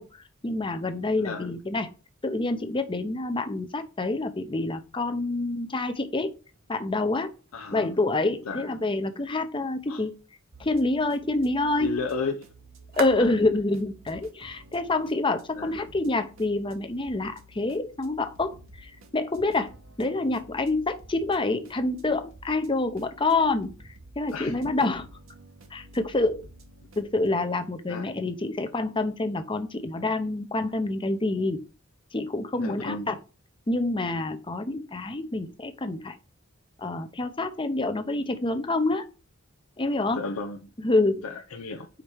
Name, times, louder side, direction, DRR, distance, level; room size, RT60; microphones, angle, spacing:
voice 1, 0.0-1.9 2.2-6.3 6.7-7.3 7.7-10.1 10.6-12.0 13.0-19.7 20.0-23.7 24.2-25.0 25.7-26.4 27.0-31.6 32.1-33.2 33.7-36.2 36.8-39.1 39.8-40.2 40.8-41.2, left 2 dB, 25° left, 0.7 m, -27 dB
sound 1, 6.3-16.3, right 5 dB, 45° right, 1.1 m, -47 dB
voice 2, 7.5-8.0 8.4-8.7 9.9-10.0 11.8-12.5 13.2-13.4 15.6-15.7 24.3-24.6 27.9-28.1 32.5-33.2 40.1-40.7 41.2-41.9, left 4 dB, 90° left, 0.6 m, -33 dB
sound 2, 10.5-27.3, right 1 dB, 75° right, 1.3 m, -51 dB
5.1 x 4.2 x 4.6 m
head